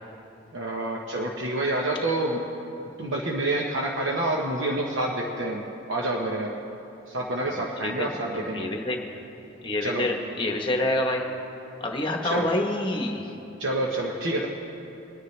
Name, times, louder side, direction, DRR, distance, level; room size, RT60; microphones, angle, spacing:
voice 1, 0.5-2.4 3.0-5.6 5.9-6.5 7.1-8.7 9.8-10.1 12.2-12.5 13.6-14.5, right 1 dB, 75° right, -1 dB, 1.0 m, -28 dB
voice 2, 7.8-9.2 9.6-11.3 11.8-13.3, left 1 dB, 25° left, 2 dB, 1.1 m, -27 dB
23.0 x 9.7 x 3.3 m, 3.0 s
head